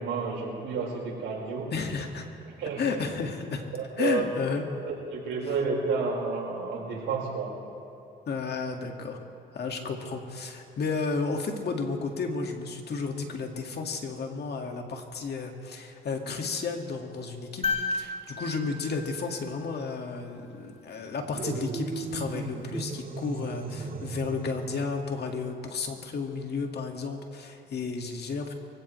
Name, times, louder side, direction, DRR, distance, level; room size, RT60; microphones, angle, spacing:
voice 1, 0.0-1.7 2.6-3.0 3.7-4.3 5.1-7.5, right 4 dB, 85° right, -3 dB, 4.7 m, -30 dB
voice 2, 1.7-2.3 2.8-3.6 4.0-4.6 8.3-9.2 9.5-28.5, left 4 dB, 55° left, 3 dB, 2.0 m, -32 dB
sound 1, 17.6-20.0 22.0-22.1, left 4 dB, 30° left, 3.3 m, -33 dB
sound 2, 21.4-24.9, right 4 dB, 45° right, 1.8 m, -36 dB
24.5 x 16.5 x 3.3 m, 2.8 s
cardioid pair, 90°, 20 cm